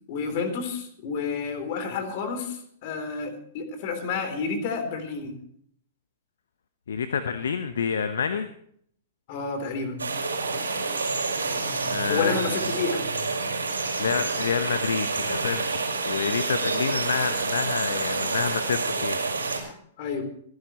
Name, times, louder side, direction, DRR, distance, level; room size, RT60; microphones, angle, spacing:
voice 1, 0.1-5.4 9.3-10.0 12.1-13.0 20.0-20.2, left 5 dB, 50° left, 7 dB, 3.6 m, -30 dB
voice 2, 6.9-8.5 11.9-12.4 14.0-19.2, left 6 dB, 70° left, 10 dB, 0.9 m, -28 dB
sound 1, 10.0-19.6, right 4 dB, 80° right, 4.8 m, -28 dB
26.0 x 11.5 x 3.1 m, 0.65 s
figure-of-eight pair, 110°, 0 cm